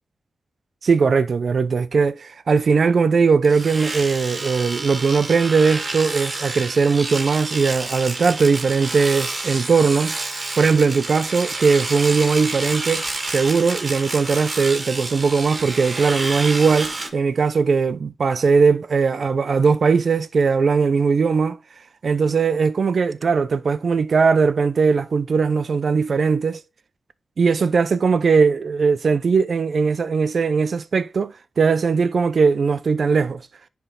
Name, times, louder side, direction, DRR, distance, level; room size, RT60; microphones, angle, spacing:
voice 1, 0.8-10.2 10.6-21.6 22.0-26.6 27.4-33.4, right 5 dB, 65° right, 0.6 m, -19 dB
Domestic sounds home sounds, 3.4-17.1, right 2 dB, 40° right, 1.7 m, -29 dB
10.0 x 3.5 x 4.3 m
cardioid pair, 65°, 0 cm